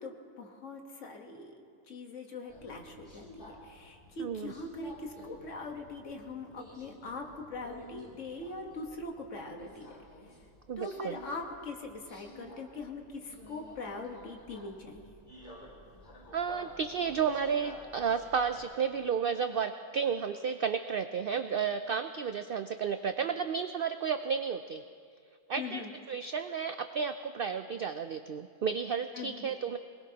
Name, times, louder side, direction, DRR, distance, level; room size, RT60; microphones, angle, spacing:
voice 1, 0.0-9.9 10.8-15.2 25.6-25.9 29.1-29.6, left 3 dB, 60° left, 2 dB, 1.7 m, -42 dB
Subway metro underground, 2.5-18.6, left 1 dB, 25° left, 2.7 m, -52 dB
voice 2, 4.2-4.5 10.7-11.2 16.3-24.8 25.5-25.8 26.1-29.8, right 6 dB, 80° right, 9 dB, 0.5 m, -32 dB
22.5 x 20.0 x 2.9 m, 2.2 s
omnidirectional pair, 1.5 m